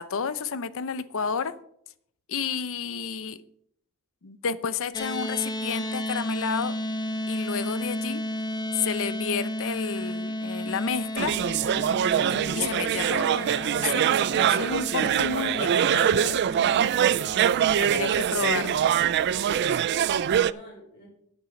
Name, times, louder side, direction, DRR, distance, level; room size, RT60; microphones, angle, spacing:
voice 1, 0.0-1.5 2.3-3.4 4.2-6.8 7.3-8.2 8.7-11.4 12.5-16.6 17.8-18.8, left 6 dB, 65° left, 0.7 m, -31 dB
sound 1, 4.9-19.3, left 1 dB, 20° left, 1.2 m, -34 dB
sound 2, 11.2-20.5, right 9 dB, 50° right, 0.3 m, -23 dB
voice 2, 17.4-18.7 19.4-21.1, equal, 45° left, 4.6 m, -45 dB
9.8 x 8.9 x 5.2 m
head